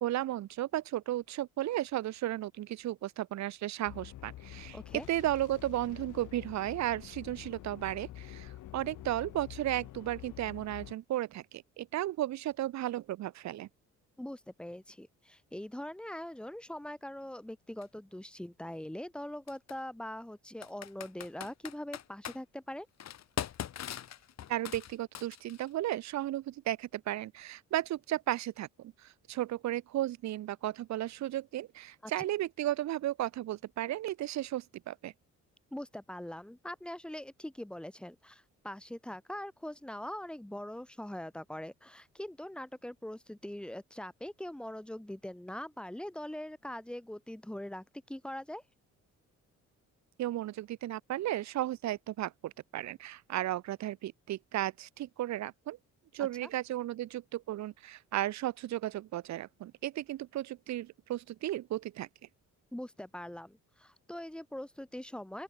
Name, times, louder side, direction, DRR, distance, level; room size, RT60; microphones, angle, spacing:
voice 1, 0.0-4.8 5.1-13.7 24.5-35.1 50.2-55.8 56.1-62.1, right 14 dB, 65° right, 0.7 m, -34 dB
sound 1, 3.9-11.0, left 14 dB, 80° left, 3.8 m, -47 dB
voice 2, 4.7-5.1 14.2-22.9 32.0-32.1 35.7-48.6 56.2-56.5 62.7-65.4, left 1 dB, 5° left, 0.8 m, -42 dB
Computer keyboard, 17.8-17.9 19.5-19.7 20.6-22.4 23.0-25.7, left 10 dB, 60° left, 2.1 m, -41 dB
open air
cardioid pair, 90°, 30 cm